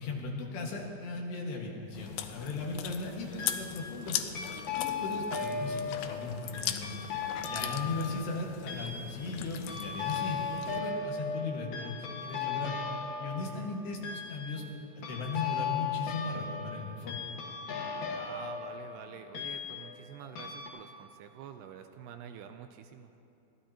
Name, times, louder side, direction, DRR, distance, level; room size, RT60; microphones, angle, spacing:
voice 1, 0.0-4.2 4.4-7.1 7.5-12.7 13.2-14.6 14.9-17.2, left 3 dB, 75° left, -1 dB, 3.8 m, -37 dB
Chewing mastication, 1.9-10.8, left 11 dB, 90° left, 2.2 m, -40 dB
sound 1, 2.1-2.6 3.4-4.0 4.3-20.1 20.4-20.7, left 5 dB, 55° left, 2.3 m, -37 dB
voice 2, 13.4-13.8 18.0-23.1, right 9 dB, 80° right, 7 dB, 2.6 m, -47 dB
24.5 x 16.5 x 2.9 m, 2.7 s
omnidirectional pair, 5.0 m